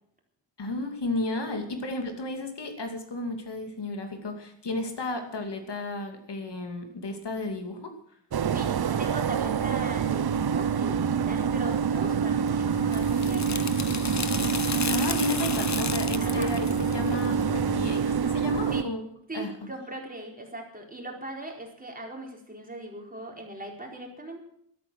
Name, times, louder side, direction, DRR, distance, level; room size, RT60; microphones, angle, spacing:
voice 1, 0.6-7.9 14.9-19.0 19.3-19.5, left 2 dB, 60° left, 5 dB, 2.6 m, -33 dB
sound 1, 8.3-18.8, right 7 dB, 55° right, 0.8 m, -26 dB
voice 2, 9.0-13.7 16.2-16.5 18.7-18.9 19.3-24.4, right 2 dB, 20° right, 0 dB, 4.2 m, -39 dB
sound 2, 12.5-18.0, left 4 dB, 35° left, 1.0 m, -34 dB
13.5 x 13.0 x 6.2 m, 0.69 s
wide cardioid pair, 120°, 46 cm